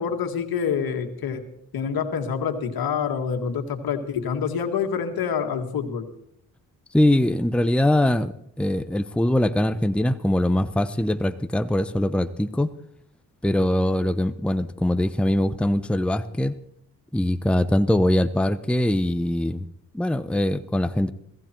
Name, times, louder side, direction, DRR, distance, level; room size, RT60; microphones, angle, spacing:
voice 1, 0.0-1.4 1.7-6.1, left 7 dB, 70° left, 6 dB, 2.1 m, -27 dB
voice 2, 6.9-8.3 8.6-12.7 13.4-16.5 17.1-19.7 19.9-21.1, left 1 dB, 5° left, 11 dB, 0.8 m, -22 dB
16.5 x 15.0 x 4.5 m, 0.74 s
supercardioid pair, 60°, 37 cm